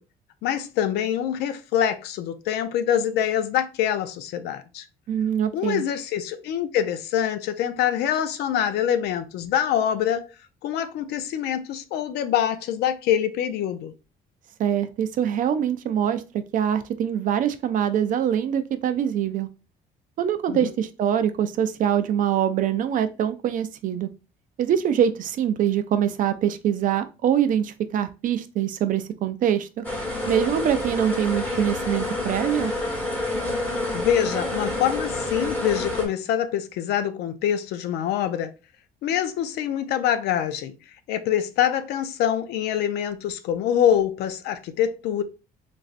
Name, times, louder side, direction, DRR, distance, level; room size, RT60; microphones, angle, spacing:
voice 1, 0.4-4.9 5.5-10.3 10.6-13.9 20.5-20.7 33.9-38.5 39.0-40.7 41.1-45.2, left 10 dB, 75° left, 0.4 m, -25 dB
voice 2, 5.1-5.8 14.6-19.5 20.2-24.1 24.6-29.8 30.3-32.7, right 9 dB, 50° right, 0.4 m, -24 dB
sound 1, 29.8-36.1, left 1 dB, 10° left, 1.0 m, -28 dB
3.1 x 2.5 x 2.4 m
cardioid pair, 110°, 17 cm